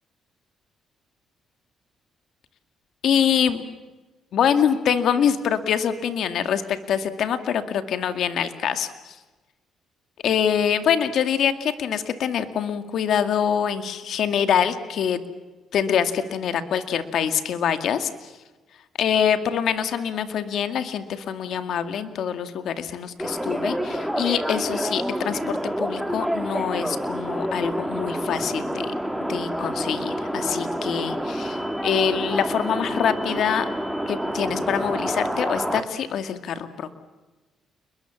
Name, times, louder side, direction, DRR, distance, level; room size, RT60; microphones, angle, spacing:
voice 1, 3.0-3.7 4.3-9.2 10.2-15.2 15.7-18.3 19.0-28.9 29.3-33.7 34.1-36.9, left 8 dB, 70° left, 9 dB, 2.2 m, -25 dB
New London Underground Victoria Line Euston PA, 23.2-35.8, equal, ahead, 2.6 m, -28 dB
29.5 x 22.0 x 7.3 m, 1.2 s
cardioid pair, 90°, 0 cm